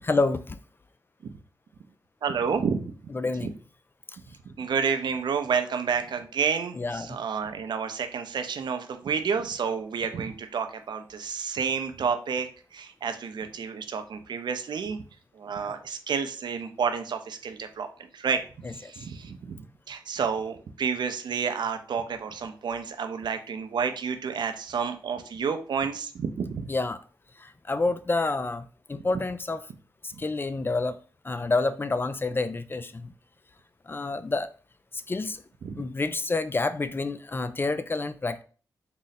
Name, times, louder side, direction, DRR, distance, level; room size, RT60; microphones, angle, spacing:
voice 1, 0.0-0.6 3.1-3.5 6.8-7.2 15.6-15.7 26.7-27.0 27.4-29.6 30.0-31.0 31.2-33.1 33.9-34.5 34.9-35.4 35.8-38.4, left 3 dB, 30° left, 0.3 m, -28 dB
voice 2, 2.2-2.9 3.4-3.5 4.5-15.0 15.3-17.9 18.1-18.4 18.7-19.6 19.9-26.7 35.6-35.8, right 6 dB, 70° right, 0.5 m, -30 dB
3.8 x 2.1 x 4.0 m
cardioid pair, 60°, 8 cm